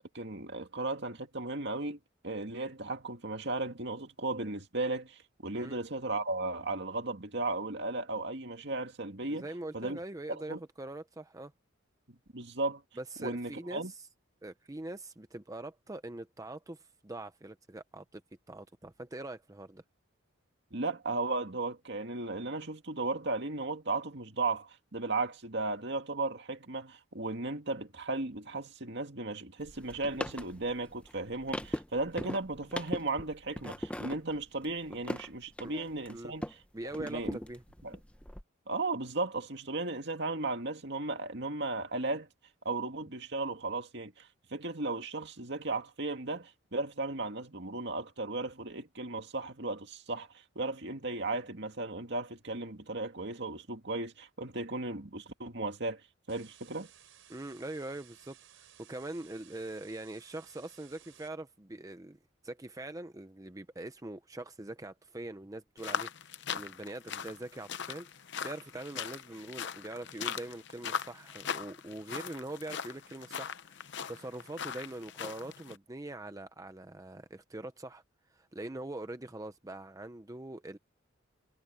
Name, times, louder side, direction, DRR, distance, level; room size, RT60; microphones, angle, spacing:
voice 1, 0.1-2.0 2.2-9.5 9.7-10.0 10.3-10.6 12.1-12.8 13.2-13.9 20.7-36.5 37.0-37.4 37.8-38.0 38.7-42.3 42.6-50.3 50.6-56.0 56.3-56.9, right 2 dB, 60° right, 2.3 m, -35 dB
voice 2, 9.3-11.5 13.0-14.1 14.4-18.2 18.5-19.8 35.6-35.7 36.1-36.3 36.7-37.6 57.3-78.0 78.3-80.8, right 2 dB, 15° right, 0.7 m, -43 dB
sound 1, 29.6-36.6 36.9-38.4, left 1 dB, 5° left, 0.9 m, -40 dB
sound 2, 56.3-61.3, right 10 dB, 85° right, 4.8 m, -58 dB
sound 3, 65.8-75.8, left 7 dB, 60° left, 0.7 m, -40 dB
head